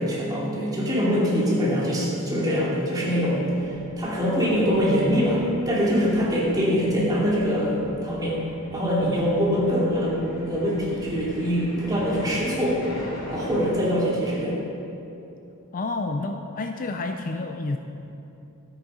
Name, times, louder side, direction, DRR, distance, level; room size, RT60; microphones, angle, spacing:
voice 1, 0.0-8.4 8.7-12.8 13.3-14.6, equal, 15° right, -6 dB, 2.8 m, -23 dB
sound 1, 3.1-13.8, left 1 dB, 65° left, 3.2 m, -41 dB
voice 2, 15.7-17.8, left 2 dB, 40° left, 5 dB, 0.5 m, -29 dB
12.5 x 8.7 x 5.5 m, 2.8 s
head